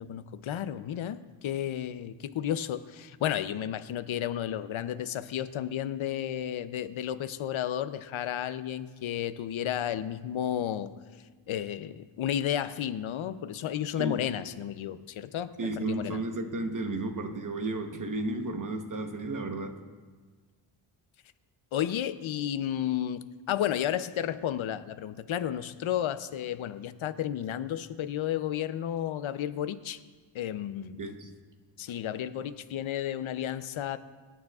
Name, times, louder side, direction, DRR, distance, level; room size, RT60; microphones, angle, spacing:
voice 1, 0.0-10.9 11.5-16.2 21.7-30.0 30.3-31.0 31.8-34.0, left 10 dB, 75° left, 12 dB, 0.6 m, -32 dB
voice 2, 14.0-14.3 15.6-19.8 31.0-31.3, right 2 dB, 40° right, 5 dB, 1.0 m, -33 dB
24.5 x 9.2 x 2.4 m, 1.4 s
wide cardioid pair, 120°, 48 cm